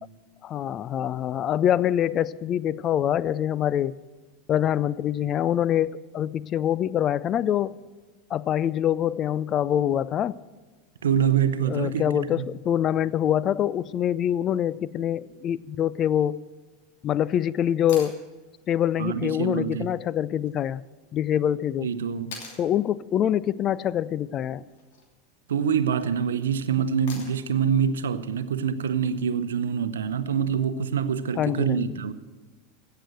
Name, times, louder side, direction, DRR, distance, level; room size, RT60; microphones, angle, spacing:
voice 1, 0.4-4.0 4.5-7.8 8.3-10.4 11.7-16.4 17.0-18.2 18.7-20.8 21.1-21.9 22.6-24.6 31.4-32.0, left 10 dB, 40° left, 0.4 m, -25 dB
voice 2, 11.0-12.5 19.0-19.9 21.8-22.4 25.5-32.1, right 7 dB, 75° right, 0.7 m, -25 dB
sound 1, 17.9-18.2 20.4-20.5 22.3-22.6 24.6-25.1 27.1-27.6 29.7-29.8, left 4 dB, 65° left, 2.8 m, -41 dB
16.5 x 6.8 x 7.7 m
hypercardioid pair, 85°, 0 cm